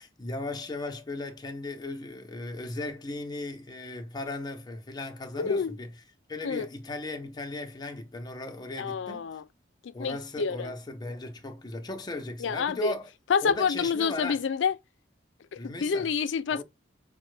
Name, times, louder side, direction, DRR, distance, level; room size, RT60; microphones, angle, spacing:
voice 1, 0.0-5.9 6.3-9.3 9.9-13.1 13.4-14.4 15.6-16.1 16.5-16.6, left 2 dB, 25° left, 0.7 m, -37 dB
voice 2, 5.4-5.8 6.4-6.7 8.8-9.4 9.8-10.7 12.4-12.9 13.3-14.8 15.6-16.6, left 6 dB, 85° left, 0.4 m, -28 dB
5.3 x 2.2 x 3.2 m
head